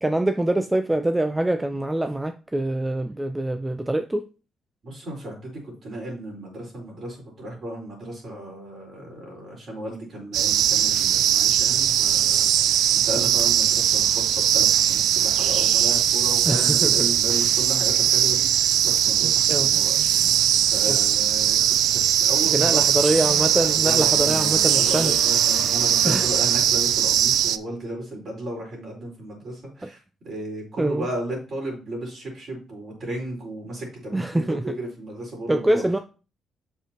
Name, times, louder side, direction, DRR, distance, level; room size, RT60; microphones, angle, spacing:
voice 1, 0.0-4.3 16.5-17.1 19.5-19.7 20.9-21.0 22.5-25.1 25.4-25.7 26.0-26.3 29.8-29.9 30.8-31.1 34.1-34.8 35.5-36.0, right 1 dB, 10° right, 0.4 m, -24 dB
voice 2, 4.8-20.3 20.7-22.8 23.6-30.0 30.2-35.8, right 1 dB, 45° right, 4.4 m, -34 dB
sound 1, 10.3-27.6, right 10 dB, 85° right, 0.4 m, -20 dB
sound 2, 23.1-27.5, left 7 dB, 90° left, 0.8 m, -38 dB
7.9 x 6.7 x 2.9 m
cardioid pair, 135°, 0 cm